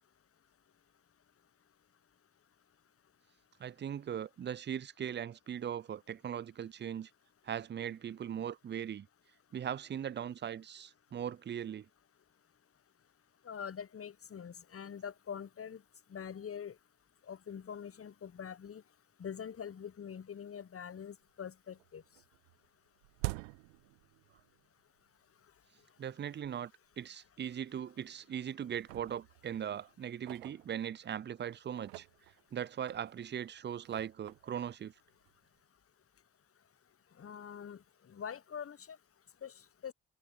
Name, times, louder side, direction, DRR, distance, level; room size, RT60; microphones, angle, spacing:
voice 1, 3.6-7.1 7.4-9.1 9.5-11.9 26.0-32.1 32.5-34.9, right 9 dB, 25° right, 0.5 m, -39 dB
voice 2, 13.4-15.8 16.1-16.7 17.3-18.8 19.2-22.0 37.2-37.8 38.1-39.0 39.4-39.5 39.8-39.9, left 7 dB, 35° left, 1.2 m, -44 dB
sound 1, 20.4-20.5 20.9-21.5 21.7-24.7 25.0-25.1 25.8-25.9 26.4-26.5 26.9-27.0 27.7-28.3 28.6-31.2 31.7-35.6, right 27 dB, 75° right, 1.0 m, -47 dB
figure-of-eight pair, 40°, 40 cm